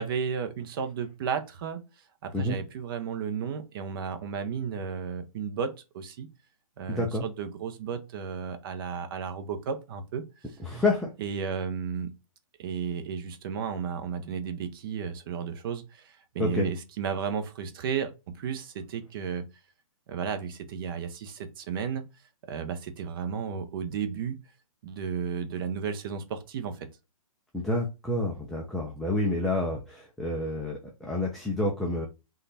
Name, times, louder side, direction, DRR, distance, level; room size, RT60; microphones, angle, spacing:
voice 1, 0.0-1.8 2.2-6.3 6.8-10.2 11.2-12.1 12.6-19.4 20.1-22.1 22.5-24.4 24.8-26.9, right 6 dB, 40° right, 0.9 m, -33 dB
voice 2, 6.9-7.2 10.6-11.1 16.4-16.7 27.5-32.1, left 2 dB, ahead, 0.4 m, -28 dB
3.7 x 3.4 x 4.1 m
hypercardioid pair, 160°, 18 cm